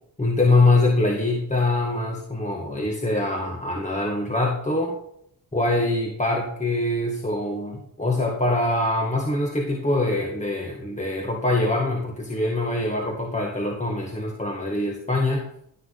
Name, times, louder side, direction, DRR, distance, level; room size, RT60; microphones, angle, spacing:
voice 1, 0.2-5.0 5.5-15.5, left 2 dB, 15° left, 0 dB, 1.8 m, -24 dB
15.5 x 6.4 x 4.0 m, 0.73 s
cardioid pair, 55°, 44 cm